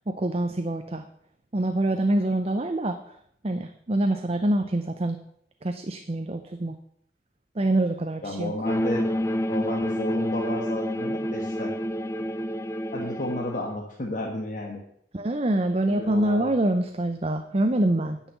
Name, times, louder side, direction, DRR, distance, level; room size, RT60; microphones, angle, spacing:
voice 1, 0.1-1.0 1.5-3.0 3.4-5.2 5.6-6.8 7.6-8.5 15.1-18.2, right 1 dB, 35° right, 7 dB, 0.6 m, -25 dB
voice 2, 8.2-9.0 9.5-11.7 12.2-12.3 12.9-14.8 15.9-16.5, left 1 dB, 45° left, 0 dB, 1.4 m, -32 dB
sound 1, 8.6-13.7, equal, 15° left, 0.5 m, -28 dB
10.0 x 6.1 x 8.2 m, 0.71 s
head